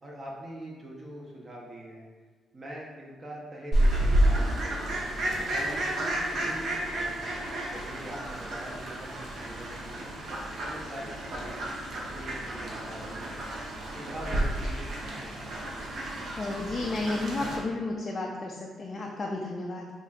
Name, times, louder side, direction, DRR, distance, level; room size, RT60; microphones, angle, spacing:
voice 1, 0.0-2.0 2.5-5.0 5.5-7.2 7.7-10.1 10.6-11.6 12.1-13.3 13.9-15.5, right 1 dB, 30° right, -2 dB, 0.7 m, -43 dB
Fowl, 3.7-17.6, right 1 dB, 65° right, 0.8 m, -30 dB
voice 2, 16.4-19.9, left 2 dB, 35° left, -1 dB, 0.4 m, -32 dB
4.8 x 2.6 x 2.3 m, 1.4 s
cardioid pair, 90°, 0 cm